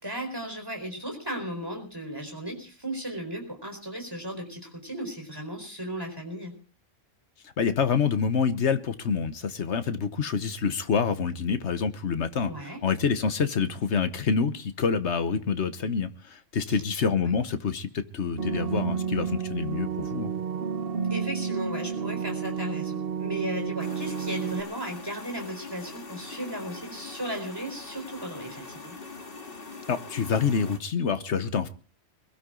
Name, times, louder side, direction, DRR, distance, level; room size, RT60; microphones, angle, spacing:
voice 1, 0.0-6.5 12.4-12.8 16.7-16.8 21.1-29.0, right 1 dB, 20° right, 3 dB, 4.4 m, -36 dB
voice 2, 7.6-12.5 12.8-20.3 29.9-31.7, left 6 dB, 65° left, 10 dB, 1.3 m, -27 dB
sound 1, 18.4-24.6, right 7 dB, 50° right, 1.4 m, -31 dB
sound 2, 23.8-30.8, left 3 dB, 45° left, 2.2 m, -42 dB
22.0 x 13.0 x 3.8 m, 0.40 s
omnidirectional pair, 1.3 m